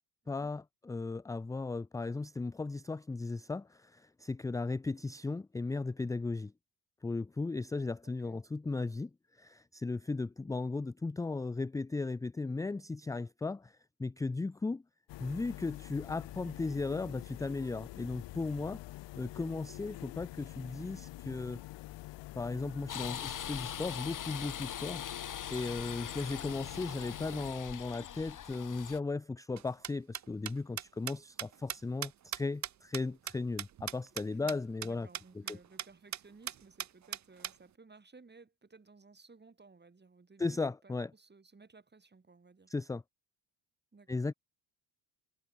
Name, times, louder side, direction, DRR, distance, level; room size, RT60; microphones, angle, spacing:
voice 1, 0.3-6.5 7.0-9.1 9.4-13.7 14.0-14.8 15.2-18.8 19.2-21.6 22.4-25.0 25.5-35.1 35.4-35.6 40.4-41.1 42.7-43.0 44.1-44.3, left 3 dB, 10° left, 0.4 m, -36 dB
voice 2, 8.0-8.4 25.8-26.2 34.4-42.7 43.9-44.2, right 4 dB, 25° right, 6.7 m, -59 dB
sound 1, 15.1-27.5, left 18 dB, 80° left, 1.4 m, -47 dB
sound 2, 22.9-29.0, left 9 dB, 45° left, 1.7 m, -42 dB
sound 3, 29.6-34.2 34.5-34.6 34.8-34.9 35.1-35.2 35.5-35.9 36.1-36.2 36.5-37.5, right 10 dB, 40° right, 0.8 m, -39 dB
cardioid pair, 95°, 42 cm